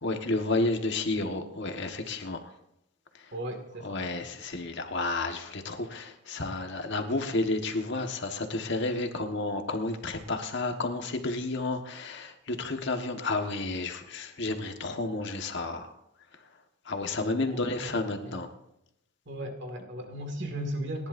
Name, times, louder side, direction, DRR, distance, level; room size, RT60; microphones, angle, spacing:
voice 1, 0.0-2.5 3.2-3.3 3.8-15.9 16.8-18.5, left 2 dB, 55° left, 5 dB, 1.5 m, -31 dB
voice 2, 3.3-4.0 17.5-17.9 18.2-18.4 19.3-21.1, right 1 dB, 55° right, 4 dB, 2.1 m, -36 dB
30.0 x 11.0 x 2.7 m, 0.83 s
head